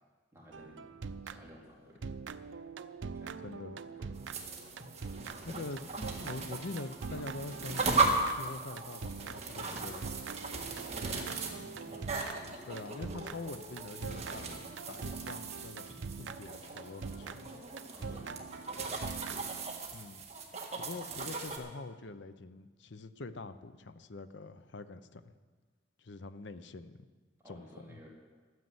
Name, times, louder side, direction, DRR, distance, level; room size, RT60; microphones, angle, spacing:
voice 1, 0.3-0.9 1.2-2.3 2.8-3.6 3.8-4.2 10.8-12.1 14.3-14.6 17.9-18.4 27.4-28.1, equal, 15° right, -4 dB, 2.8 m, -54 dB
sound 1, 0.5-1.7 2.0-19.8, right 5 dB, 80° right, 0.5 m, -44 dB
voice 2, 3.4-3.8 5.4-5.9 6.2-10.3 11.1-11.3 12.4-14.5 14.9-17.5 19.9-20.3 20.8-25.2 26.0-27.0 27.5-28.0, left 3 dB, 70° left, 12 dB, 0.7 m, -45 dB
sound 2, 4.1-21.6, right 3 dB, 35° right, 1.6 m, -37 dB
12.5 x 9.5 x 7.9 m, 1.4 s
head